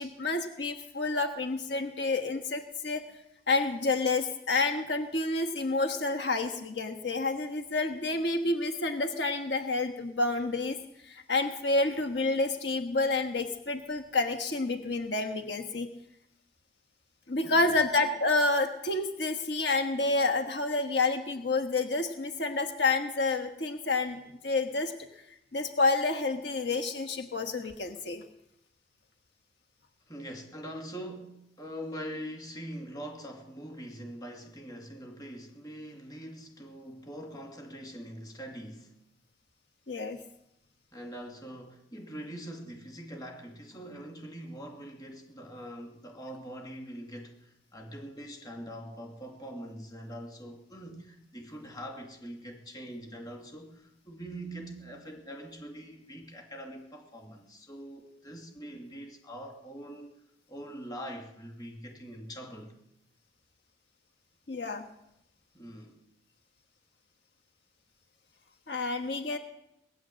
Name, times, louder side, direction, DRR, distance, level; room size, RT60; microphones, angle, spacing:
voice 1, 0.0-3.0 3.5-10.8 11.0-15.9 17.3-24.9 25.5-28.2 39.9-40.2 64.5-64.9 68.7-69.4, left 3 dB, 65° left, 5 dB, 1.3 m, -29 dB
voice 2, 17.4-17.8 30.1-39.0 40.9-60.1 60.5-62.7 65.5-66.0, equal, 20° left, 2 dB, 2.4 m, -43 dB
19.0 x 9.7 x 7.7 m, 0.81 s
head